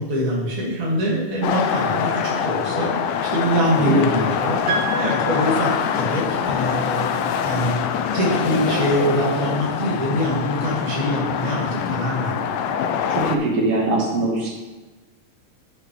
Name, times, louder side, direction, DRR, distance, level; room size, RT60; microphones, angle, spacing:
voice 1, 0.0-2.9 3.2-4.6 5.0-7.1 7.4-7.8 8.1-12.4, equal, 35° right, -4 dB, 0.6 m, -23 dB
sound 1, 1.4-13.4, left 7 dB, 80° left, 2.2 m, -24 dB
Piano, 4.7-6.4, right 5 dB, 70° right, 3.2 m, -30 dB
voice 2, 13.1-14.5, right 2 dB, 55° right, -2 dB, 1.9 m, -22 dB
13.5 x 5.8 x 3.2 m, 1.2 s
omnidirectional pair, 4.2 m